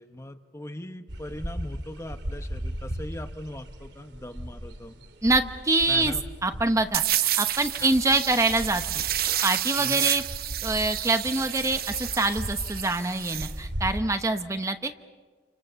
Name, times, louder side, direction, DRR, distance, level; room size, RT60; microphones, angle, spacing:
voice 1, 0.0-5.0 5.9-6.2 7.8-7.9 9.8-10.1, left 1 dB, 15° left, 8 dB, 1.0 m, -40 dB
sound 1, 1.1-14.0, equal, 85° right, 2.7 m, -38 dB
voice 2, 5.2-6.1 6.4-7.0 7.4-9.0 9.4-10.2 10.6-15.0, right 2 dB, 20° right, 8 dB, 0.9 m, -25 dB
sound 2, 6.9-13.5, right 12 dB, 60° right, 0.8 m, -30 dB
30.0 x 28.5 x 6.9 m, 1.4 s
head